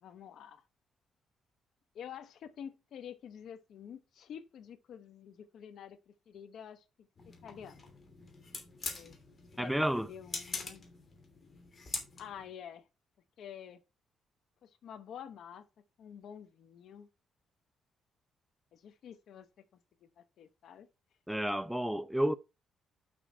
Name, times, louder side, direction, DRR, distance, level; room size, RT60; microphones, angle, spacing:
voice 1, 0.0-0.6 1.9-7.1 7.4-7.8 8.9-9.1 9.5-10.9 12.2-12.8 13.4-13.8 14.6-15.7 16.0-17.1 18.7-19.5 20.0-20.9, left 8 dB, 70° left, 1.0 m, -48 dB
sound 1, 7.2-12.5, left 4 dB, 35° left, 2.7 m, -44 dB
voice 2, 9.6-10.1 21.3-22.3, equal, ahead, 0.5 m, -30 dB
6.2 x 5.8 x 4.6 m
cardioid pair, 90°, 0 cm